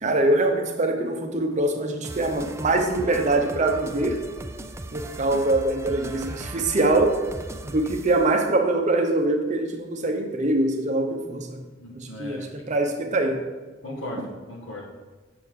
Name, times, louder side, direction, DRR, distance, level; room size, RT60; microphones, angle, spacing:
voice 1, 0.0-4.2 4.9-7.2 7.6-11.6 11.9-13.4, right 2 dB, 40° right, 4 dB, 0.7 m, -23 dB
sound 1, 2.0-8.3, right 2 dB, 15° right, 0.3 m, -38 dB
voice 2, 11.8-12.5 13.8-14.9, left 1 dB, 90° left, 0 dB, 1.4 m, -37 dB
6.8 x 6.3 x 3.7 m, 1.3 s
head